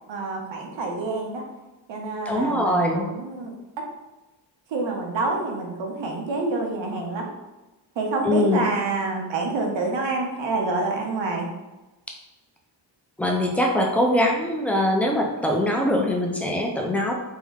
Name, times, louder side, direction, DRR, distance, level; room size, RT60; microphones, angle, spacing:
voice 1, 0.1-1.4 1.9-3.5 4.7-7.3 8.0-11.5, right 3 dB, 90° right, 1 dB, 0.8 m, -27 dB
voice 2, 2.3-3.1 8.2-8.7 13.2-17.1, left 1 dB, 5° left, 0 dB, 0.3 m, -22 dB
3.6 x 2.1 x 3.4 m, 1.1 s
wide cardioid pair, 140°, 44 cm